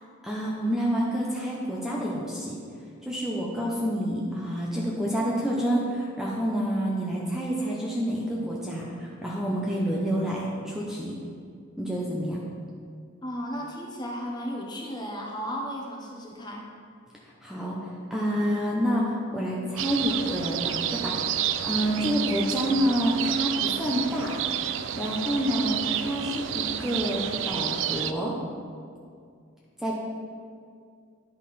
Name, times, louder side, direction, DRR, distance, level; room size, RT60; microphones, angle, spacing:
voice 1, 0.2-2.6 3.0-11.2 11.8-12.4 17.4-17.8 18.1-21.2 21.6-24.3 24.9-28.4 29.8-29.9, equal, ahead, -5 dB, 0.8 m, -28 dB
voice 2, 13.2-16.6, equal, 20° left, -1 dB, 1.1 m, -34 dB
sound 1, 19.8-28.1, right 10 dB, 60° right, 0.4 m, -30 dB
10.5 x 5.6 x 4.2 m, 2.3 s
head